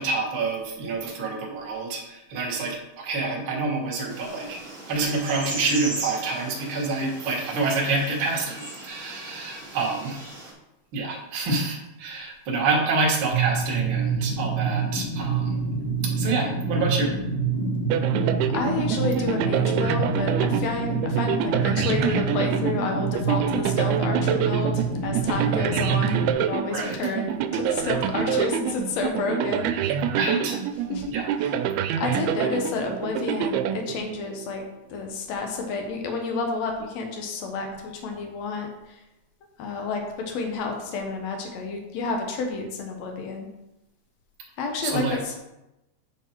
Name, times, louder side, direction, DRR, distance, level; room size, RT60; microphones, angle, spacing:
voice 1, 0.0-4.6 4.9-10.2 10.9-15.6 16.0-17.1 26.7-27.0 30.1-30.6 31.1-31.3 44.8-45.2, right 3 dB, 50° right, -3 dB, 1.5 m, -27 dB
sound 1, 4.1-10.5, right 2 dB, 20° right, 2.8 m, -38 dB
sound 2, 13.3-26.3, right 4 dB, 15° left, 2.8 m, -27 dB
sound 3, 17.9-34.5, right 9 dB, 85° right, 2.5 m, -27 dB
voice 2, 18.5-30.0 30.9-31.0 31.4-31.5 32.0-34.6 34.9-39.0 39.6-43.5 44.6-45.4, left 4 dB, 80° left, 3 dB, 1.5 m, -30 dB
8.9 x 4.7 x 4.5 m, 0.94 s
omnidirectional pair, 4.5 m